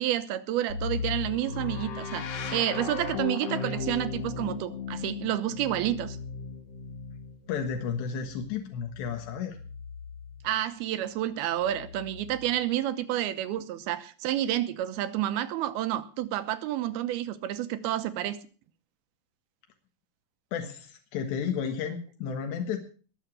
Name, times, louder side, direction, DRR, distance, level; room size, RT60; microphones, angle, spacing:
voice 1, 0.0-6.2 10.4-18.4, right 12 dB, 75° right, 2.7 m, -30 dB
sound 1, 0.7-10.5 11.5-12.6, left 5 dB, 60° left, 1.7 m, -37 dB
voice 2, 7.5-9.6 20.5-22.8, left 7 dB, 85° left, 3.7 m, -32 dB
21.0 x 7.1 x 6.2 m
omnidirectional pair, 4.8 m